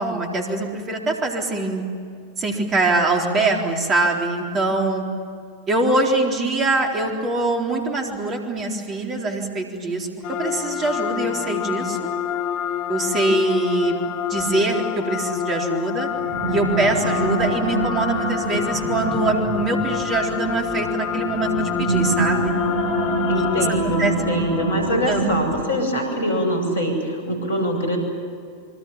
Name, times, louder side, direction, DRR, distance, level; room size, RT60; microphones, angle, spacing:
voice 1, 0.0-1.8 2.4-5.0 5.7-10.1 10.4-12.0 12.9-14.0 14.3-16.1 16.5-22.5 24.0-24.1 25.1-25.2, right 2 dB, 25° right, 2 dB, 3.9 m, -23 dB
sound 1, 10.2-23.7, left 10 dB, 40° left, 1.3 m, -27 dB
sound 2, 16.1-25.9, right 3 dB, 45° right, 7.7 m, -27 dB
voice 2, 23.3-28.0, equal, 70° left, 4 dB, 7.4 m, -23 dB
27.0 x 25.0 x 7.5 m, 2.3 s
figure-of-eight pair, 90°, 0 cm